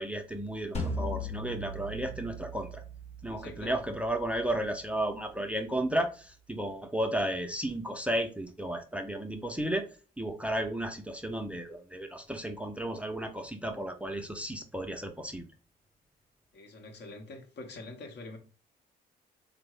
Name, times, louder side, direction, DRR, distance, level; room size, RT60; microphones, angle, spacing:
voice 1, 0.0-2.8 3.2-9.9 10.2-15.5, right 1 dB, 5° right, 0.5 m, -33 dB
sound 1, 0.7-5.8, left 1 dB, 35° left, 0.9 m, -40 dB
voice 2, 3.4-3.8 16.5-18.4, left 2 dB, 60° left, 0.8 m, -45 dB
3.5 x 2.0 x 3.2 m
hypercardioid pair, 50°, 20 cm